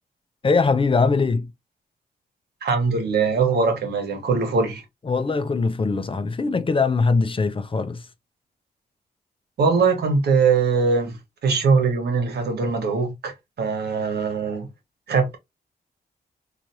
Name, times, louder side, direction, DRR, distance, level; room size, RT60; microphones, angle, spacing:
voice 1, 0.4-1.5 5.0-8.1, left 4 dB, 30° left, 0.5 m, -21 dB
voice 2, 2.6-4.8 9.6-14.7 15.1-15.4, right 4 dB, 85° right, 1.1 m, -21 dB
3.2 x 2.4 x 2.7 m
cardioid pair, 80°, 17 cm